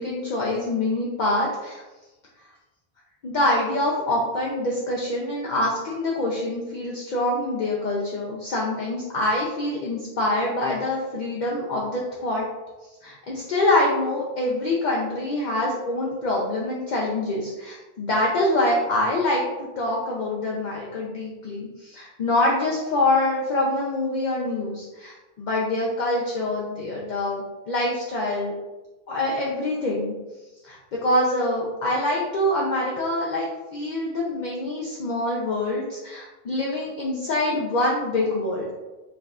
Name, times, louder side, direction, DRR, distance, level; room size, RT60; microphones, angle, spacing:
voice 1, 0.0-1.8 3.2-12.4 13.0-28.5 29.1-30.1 30.6-38.6, left 1 dB, 55° left, -4 dB, 0.6 m, -25 dB
4.7 x 2.3 x 2.3 m, 1.1 s
omnidirectional pair, 1.1 m